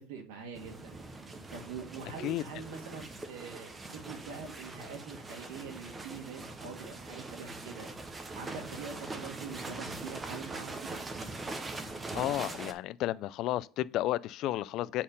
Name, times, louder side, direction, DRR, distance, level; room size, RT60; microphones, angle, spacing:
voice 1, 0.1-0.9 1.5-7.9 8.3-11.0, right 5 dB, 75° right, 1.8 m, -44 dB
sound 1, 0.5-12.7, right 2 dB, 15° right, 0.7 m, -42 dB
voice 2, 12.1-15.0, left 14 dB, 45° left, 0.3 m, -32 dB
7.4 x 4.3 x 5.4 m
supercardioid pair, 145°, 0 cm